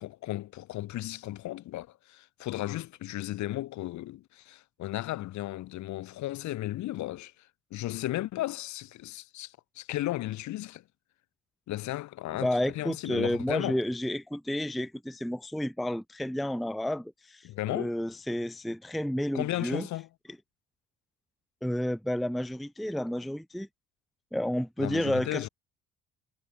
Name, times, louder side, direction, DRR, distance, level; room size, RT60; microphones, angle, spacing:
voice 1, 0.0-10.8 11.7-13.8 17.4-17.9 19.3-20.1 24.8-25.5, left 15 dB, 55° left, 1.5 m, -35 dB
voice 2, 12.4-19.9 21.6-23.7 24.3-25.5, left 1 dB, ahead, 0.6 m, -31 dB
hypercardioid pair, 55°, 33 cm